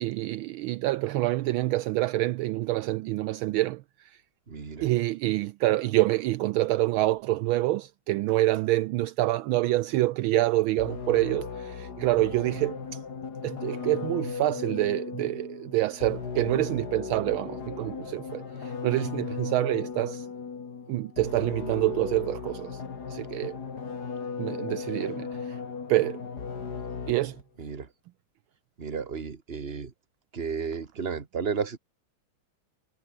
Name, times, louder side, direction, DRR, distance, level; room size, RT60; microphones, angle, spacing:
voice 1, 0.0-4.2 4.8-13.0 13.4-20.3 20.9-22.8 23.1-23.6 24.4-25.6 25.9-26.2 27.1-27.4, right 17 dB, 75° right, 1.3 m, -27 dB
voice 2, 4.5-4.9 27.6-27.9 28.8-29.9 30.3-31.8, right 6 dB, 30° right, 1.8 m, -33 dB
sound 1, 10.8-27.4, left 5 dB, 50° left, 2.7 m, -36 dB
omnidirectional pair, 2.4 m